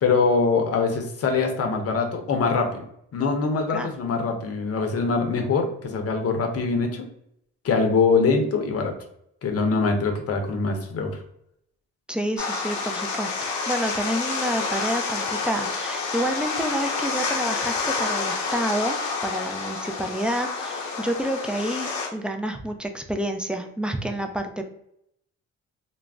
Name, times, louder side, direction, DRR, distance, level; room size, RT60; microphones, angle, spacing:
voice 1, 0.0-2.8 3.1-7.1 7.6-8.9 9.4-11.2, left 4 dB, 50° left, 4 dB, 0.7 m, -23 dB
voice 2, 12.1-19.0 19.2-24.6, equal, 5° right, 5 dB, 0.3 m, -29 dB
sound 1, 12.4-22.1, left 4 dB, 90° left, 0.7 m, -28 dB
2.4 x 2.0 x 3.3 m, 0.75 s
cardioid pair, 90°, 30 cm